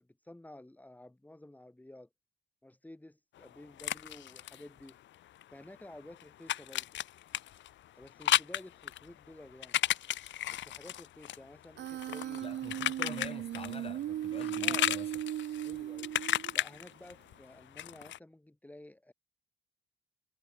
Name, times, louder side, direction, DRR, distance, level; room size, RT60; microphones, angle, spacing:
voice 1, 0.0-2.1 2.6-5.0 5.5-6.9 7.9-9.8 10.5-12.5 14.6-14.9 15.6-16.1 16.5-19.1, left 1 dB, 10° left, 2.5 m, -52 dB
sound 1, 3.4-5.5 5.8-13.9 14.2-18.2, left 13 dB, 70° left, 0.8 m, -34 dB
Human voice, 11.8-16.7, right 12 dB, 65° right, 0.7 m, -37 dB
voice 2, 12.4-15.1, left 5 dB, 30° left, 1.1 m, -46 dB
cardioid pair, 90°, 20 cm